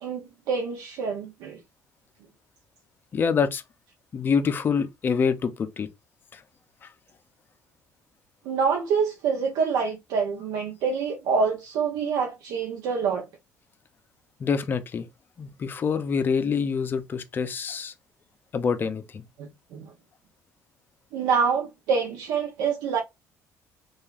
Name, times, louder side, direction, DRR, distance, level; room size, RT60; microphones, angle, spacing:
voice 1, 0.0-1.6 8.5-13.3 19.4-19.9 21.1-23.0, right 5 dB, 85° right, 0.6 m, -26 dB
voice 2, 3.1-3.6 4.1-5.9 6.3-6.4 14.4-15.1 15.4-17.9 18.5-19.2, left 6 dB, 35° left, 0.5 m, -26 dB
3.1 x 2.4 x 2.3 m
cardioid pair, 115°, 6 cm